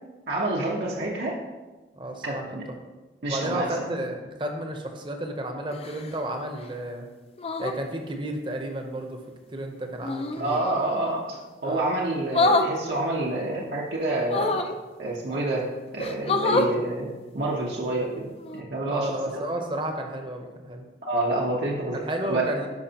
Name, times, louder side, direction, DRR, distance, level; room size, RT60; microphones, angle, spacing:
voice 1, 0.3-1.4 2.2-2.6 3.2-3.7 10.4-14.5 15.0-15.7 15.9-17.1 17.3-19.4 21.0-22.0 22.3-22.6, right 2 dB, 75° right, -4 dB, 1.0 m, -28 dB
voice 2, 2.0-2.6 3.3-7.1 7.6-9.2 9.5-10.6 11.6-11.9 18.9-20.9 21.9-22.7, right 1 dB, 30° right, 4 dB, 0.8 m, -32 dB
sound 1, 5.7-6.2 7.4-7.8 10.0-10.5 12.3-12.7 14.2-14.8 15.5-15.6 16.0-16.7 18.4-18.6, left 2 dB, 35° left, 0.4 m, -25 dB
10.5 x 5.2 x 2.9 m, 1.2 s
head